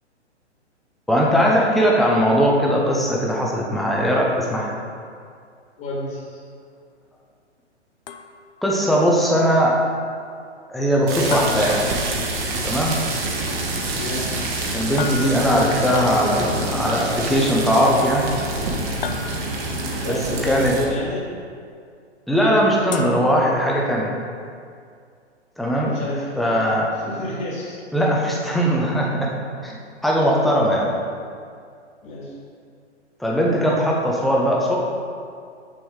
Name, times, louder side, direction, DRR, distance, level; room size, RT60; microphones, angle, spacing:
voice 1, 1.1-4.8 8.6-9.8 10.7-11.9 12.6-13.0 14.7-18.4 20.4-20.7 22.3-24.2 25.6-25.9 26.4-26.9 27.9-29.3 29.6-29.7 30.0-31.0 33.2-34.8, equal, ahead, -3 dB, 0.5 m, -19 dB
voice 2, 5.8-6.4 13.8-14.3 19.9-21.2 25.7-26.6 26.9-27.8 32.0-32.4, left 1 dB, 25° left, -5 dB, 1.7 m, -29 dB
sound 1, 8.1-8.7 11.3-12.6 15.0-15.9 19.0-19.8 22.9-23.9, left 6 dB, 50° left, 0.6 m, -33 dB
sound 2, 11.1-20.8, right 2 dB, 30° right, 1.1 m, -27 dB
7.0 x 6.4 x 4.7 m, 2.3 s
figure-of-eight pair, 120°, 35 cm